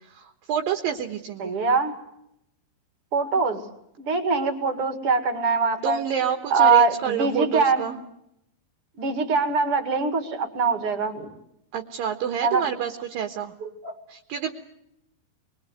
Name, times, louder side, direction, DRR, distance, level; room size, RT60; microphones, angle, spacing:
voice 1, 0.1-1.5 5.8-8.0 11.7-13.5 14.1-14.5, right 9 dB, 65° right, 5 dB, 2.8 m, -28 dB
voice 2, 1.4-1.9 3.1-3.6 4.0-6.0 6.5-7.9 9.0-11.3 12.4-12.6 13.6-13.9, right 4 dB, 40° right, 7 dB, 2.5 m, -23 dB
26.0 x 22.5 x 8.1 m, 0.80 s
omnidirectional pair, 4.9 m